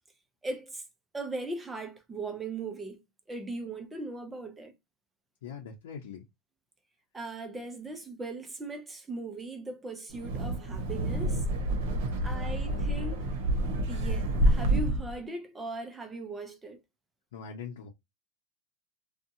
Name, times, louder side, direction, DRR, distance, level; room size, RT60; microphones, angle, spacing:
voice 1, 0.4-0.8 1.1-3.0 3.3-4.7 7.1-11.4 12.2-13.3 13.9-16.8, right 3 dB, 10° right, 0.6 m, -39 dB
voice 2, 5.4-6.2 12.1-13.3 17.3-17.9, left 6 dB, 90° left, 0.7 m, -43 dB
Wind, 10.1-15.2, right 1 dB, 65° right, 0.8 m, -28 dB
2.7 x 2.2 x 2.7 m
supercardioid pair, 155°, 0 cm